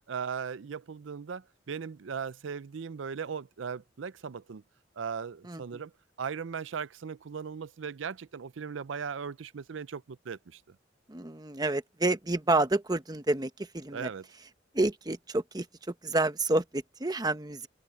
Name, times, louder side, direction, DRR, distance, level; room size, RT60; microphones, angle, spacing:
voice 1, 0.1-4.6 5.0-5.9 6.2-10.8 13.9-14.3, right 6 dB, 80° right, 0.5 m, -38 dB
voice 2, 11.1-14.1 14.7-15.7 16.0-17.7, right 2 dB, 20° right, 0.9 m, -29 dB
open air
head